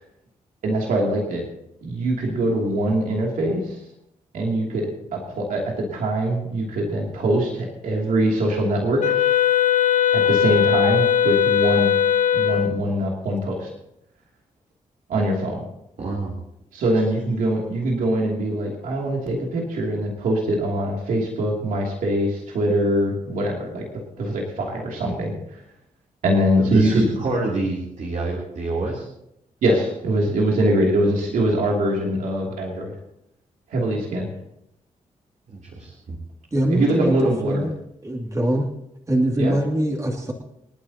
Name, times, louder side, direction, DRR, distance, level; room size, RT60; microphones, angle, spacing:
voice 1, 0.6-1.4 1.8-3.8 4.3-5.6 5.9-9.0 10.1-11.9 12.3-13.7 15.1-15.7 16.7-23.8 24.2-25.4 26.2-27.1 29.6-32.9 33.7-34.3 36.7-37.6 39.4-39.6, right 1 dB, 90° right, -2 dB, 2.8 m, -23 dB
Wind instrument woodwind instrument, 9.0-12.8, left 9 dB, 75° left, 0.7 m, -19 dB
voice 2, 16.0-16.3 26.6-29.1 35.5-36.2, right 2 dB, 65° right, -2 dB, 3.3 m, -27 dB
voice 3, 36.5-37.7 38.0-38.7 39.1-40.3, right 1 dB, 25° right, 0 dB, 2.5 m, -23 dB
28.0 x 9.9 x 2.9 m, 0.80 s
cardioid pair, 70°, 14 cm